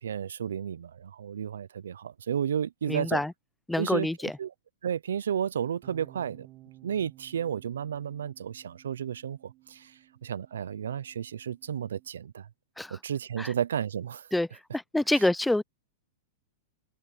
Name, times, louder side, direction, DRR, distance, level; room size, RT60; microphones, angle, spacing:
voice 1, 0.0-3.2 3.8-4.1 4.4-4.5 4.8-6.5 6.8-9.9 10.2-12.5 12.9-14.3, right 8 dB, 85° right, 0.5 m, -32 dB
voice 2, 2.9-3.3 3.7-4.3 12.8-13.0 13.4-13.5 14.3-14.5 14.7-15.6, left 1 dB, 5° left, 0.5 m, -26 dB
sound 1, 5.8-12.1, right 17 dB, 40° right, 1.2 m, -55 dB
hypercardioid pair, 125°, 0 cm